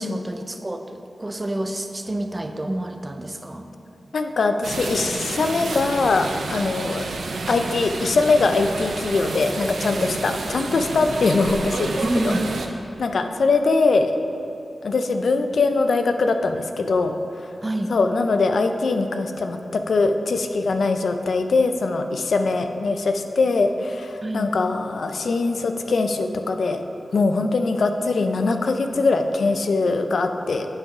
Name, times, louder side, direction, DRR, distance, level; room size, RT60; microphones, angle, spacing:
voice 1, 0.0-3.7 12.0-12.5 17.6-18.0 24.2-24.5, right 1 dB, 25° right, 6 dB, 0.5 m, -28 dB
voice 2, 4.1-7.0 7.5-12.4 13.0-14.1 14.8-17.1 17.9-26.8 27.1-30.7, left 3 dB, 75° left, 7 dB, 0.5 m, -22 dB
sound 1, 4.6-12.7, right 3 dB, 90° right, 0.6 m, -30 dB
8.0 x 5.7 x 4.8 m, 2.9 s
wide cardioid pair, 95°, 0 cm